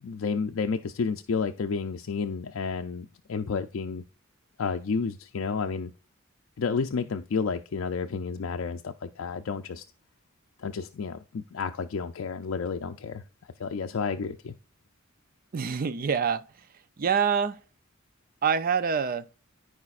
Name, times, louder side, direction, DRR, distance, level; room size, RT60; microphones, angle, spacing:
voice 1, 0.0-4.0 4.6-5.9 6.6-9.8 10.6-13.2 13.6-14.5, left 5 dB, 65° left, 0.4 m, -31 dB
voice 2, 15.5-16.4 17.0-17.6 18.4-19.3, right 6 dB, 45° right, 0.4 m, -26 dB
13.5 x 5.0 x 2.4 m
head